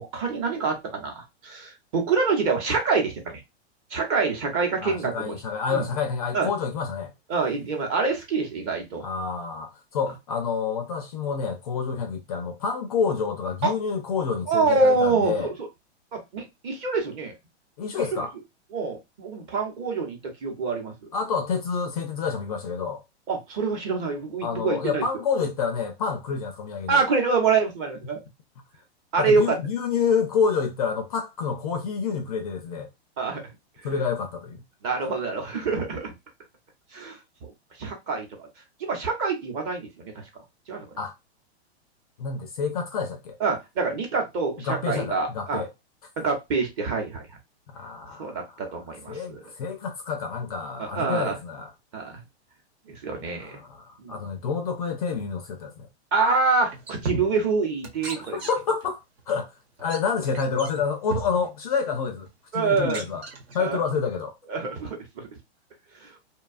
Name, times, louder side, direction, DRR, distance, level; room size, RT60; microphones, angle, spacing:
voice 1, 0.0-3.4 3.9-5.4 5.7-5.9 6.3-6.5 7.3-9.0 13.6-13.7 14.5-15.5 16.1-17.3 18.7-20.9 23.3-25.0 26.9-28.2 29.1-29.6 33.2-33.4 33.9-34.0 34.8-36.1 36.9-37.5 37.8-38.5 38.8-40.2 40.7-40.9 43.4-45.6 46.2-47.3 48.2-49.4 50.8-51.3 51.9-52.2 52.9-53.6 54.0-54.2 56.1-58.4 62.5-63.0 63.6-63.8 64.5-65.3 66.0-66.1, right 4 dB, 30° right, 0.9 m, -26 dB
voice 2, 4.8-7.1 9.0-15.5 17.8-18.3 21.1-23.0 24.4-27.0 29.2-32.9 33.8-34.6 41.0-41.1 42.2-43.4 44.6-45.7 47.7-48.6 49.1-51.7 53.3-55.9 58.0-59.5 59.8-62.3 62.5-63.2 63.5-64.3, left 5 dB, 35° left, 0.4 m, -28 dB
sound 1, 56.3-56.4 56.7-57.6 57.8-58.9 59.2-59.3 59.8-60.0 60.3-61.5 62.3-62.4 62.7-64.0, right 4 dB, 65° right, 1.2 m, -36 dB
2.7 x 2.3 x 2.4 m
hypercardioid pair, 160°, 33 cm